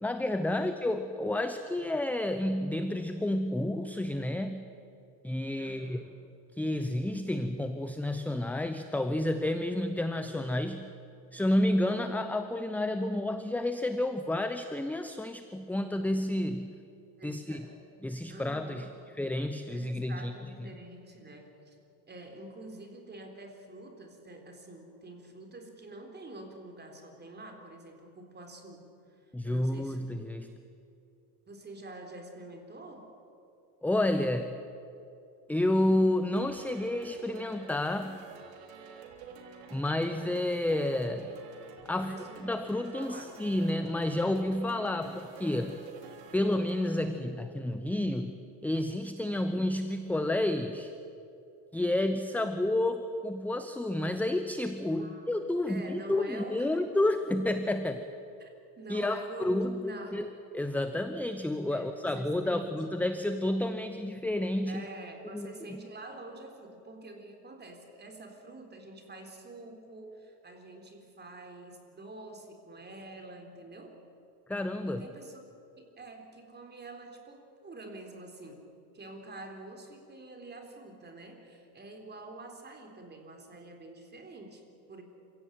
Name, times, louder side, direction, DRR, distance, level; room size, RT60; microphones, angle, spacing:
voice 1, 0.0-4.6 5.2-6.0 6.6-10.9 11.3-16.8 17.2-17.6 18.0-18.9 19.2-20.3 20.6-20.7 29.3-30.5 33.8-34.5 35.5-38.2 39.7-41.4 41.9-45.8 46.3-48.4 48.6-50.9 51.7-58.0 58.9-60.3 60.5-64.9 65.3-65.8 74.5-75.0, left 1 dB, 5° left, 9 dB, 0.8 m, -30 dB
voice 2, 5.6-6.0 17.2-17.8 18.3-19.0 19.7-21.8 22.1-28.9 29.4-30.2 31.5-33.1 42.0-43.4 45.8-45.9 55.0-56.9 58.4-60.3 61.7-62.7 64.7-74.0 74.8-75.4 75.8-78.7 78.9-85.0, right 2 dB, 20° right, 4 dB, 4.0 m, -47 dB
sound 1, 36.4-47.0, right 6 dB, 80° right, 3.7 m, -49 dB
27.0 x 16.5 x 9.2 m, 2.7 s
cardioid pair, 120°, 46 cm